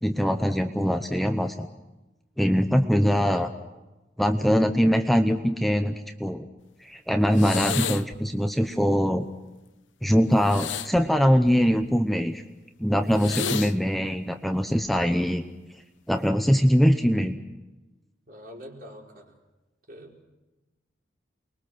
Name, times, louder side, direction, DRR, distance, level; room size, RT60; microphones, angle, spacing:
voice 1, 0.0-1.7 2.4-3.5 4.2-5.9 6.2-6.5 6.8-9.2 10.0-12.4 12.8-15.4 16.1-17.4, equal, ahead, 6 dB, 0.8 m, -22 dB
sound 1, 7.3-8.2 10.4-11.9 13.1-13.7 14.8-15.1, left 8 dB, 85° left, 1.0 m, -32 dB
voice 2, 18.3-19.4 19.9-20.2, equal, 50° right, 0 dB, 4.4 m, -45 dB
29.0 x 22.0 x 6.2 m, 1.1 s
head